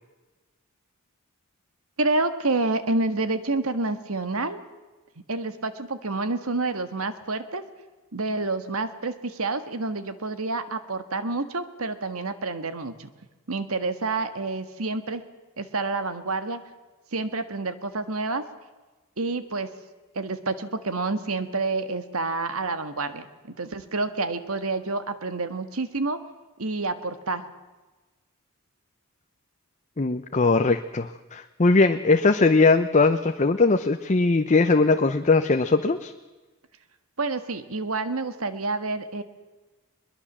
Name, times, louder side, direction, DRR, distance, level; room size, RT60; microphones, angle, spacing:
voice 1, 2.0-4.6 5.3-7.6 8.1-13.1 13.5-15.2 15.6-16.6 17.1-18.4 19.2-19.7 20.1-23.3 23.6-26.2 26.6-27.5 37.2-39.2, right 3 dB, 75° right, 10 dB, 1.6 m, -28 dB
voice 2, 30.0-36.1, left 3 dB, 35° left, 8 dB, 0.7 m, -20 dB
22.0 x 21.5 x 7.4 m, 1.2 s
head